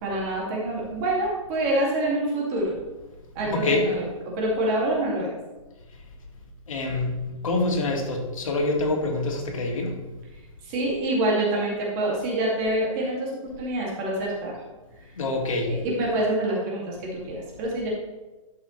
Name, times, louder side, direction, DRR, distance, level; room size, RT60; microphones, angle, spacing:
voice 1, 0.0-2.8 3.3-5.3 10.6-14.5 15.7-17.9, right 1 dB, 30° right, -3 dB, 2.4 m, -26 dB
voice 2, 3.4-4.0 6.7-7.1 7.4-10.0 15.2-15.7, left 2 dB, 70° left, 0 dB, 2.3 m, -26 dB
12.0 x 6.2 x 3.3 m, 1.2 s
hypercardioid pair, 160°, 18 cm